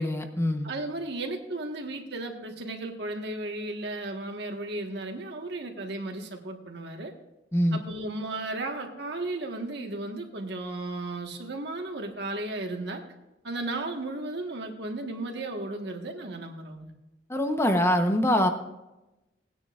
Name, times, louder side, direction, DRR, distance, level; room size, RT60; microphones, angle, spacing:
voice 1, 0.0-0.7 7.5-7.8 17.3-18.5, equal, 15° left, 5 dB, 1.0 m, -24 dB
voice 2, 0.6-7.1 7.7-13.0 13.4-16.9, right 2 dB, 65° right, 3 dB, 1.5 m, -34 dB
18.5 x 9.7 x 2.5 m, 0.98 s
head